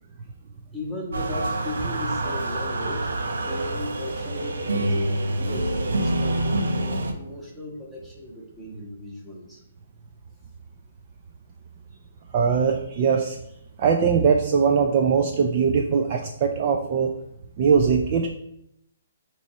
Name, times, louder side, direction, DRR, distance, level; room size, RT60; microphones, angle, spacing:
voice 1, 0.7-3.1 3.4-9.6, left 1 dB, 5° right, -5 dB, 1.3 m, -37 dB
sound 1, 1.1-7.1, right 1 dB, 90° right, 1.0 m, -26 dB
voice 2, 12.3-13.4 13.8-17.1 17.6-18.3, right 6 dB, 30° right, 3 dB, 0.5 m, -21 dB
6.8 x 3.0 x 5.6 m, 0.78 s
hypercardioid pair, 170°, 0 cm